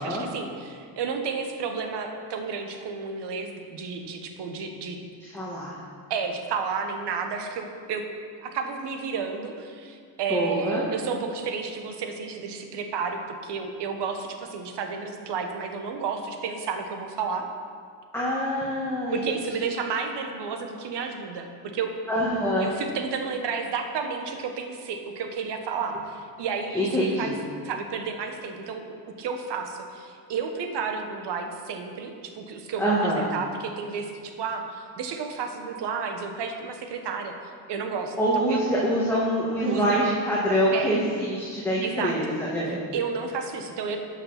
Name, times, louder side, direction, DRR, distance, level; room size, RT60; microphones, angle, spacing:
voice 1, 0.0-5.0 6.1-8.0 8.4-17.5 19.1-21.9 22.6-27.3 27.6-28.8 29.2-37.3 37.7-38.1 38.5-38.6 39.6-40.0 40.7-41.0 41.8-42.2 42.9-44.0, right 5 dB, 60° right, 5 dB, 1.4 m, -32 dB
voice 2, 5.2-5.8 10.3-10.8 18.1-19.4 22.1-22.7 26.7-27.4 32.8-33.3 38.2-42.8, equal, 5° left, -7 dB, 1.9 m, -25 dB
12.0 x 5.7 x 6.0 m, 2.1 s
cardioid pair, 100°, 47 cm